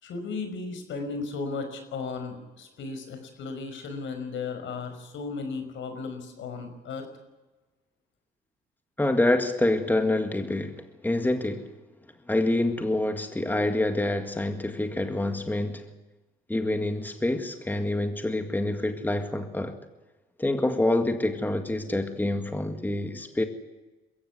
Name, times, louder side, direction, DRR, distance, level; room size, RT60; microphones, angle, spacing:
voice 1, 0.0-7.1, left 4 dB, 75° left, 5.4 m, -35 dB
voice 2, 9.0-11.7 12.3-15.9 16.5-19.8 20.4-23.4, left 1 dB, 10° left, 1.9 m, -26 dB
22.0 x 15.5 x 9.6 m
cardioid pair, 90°, 20 cm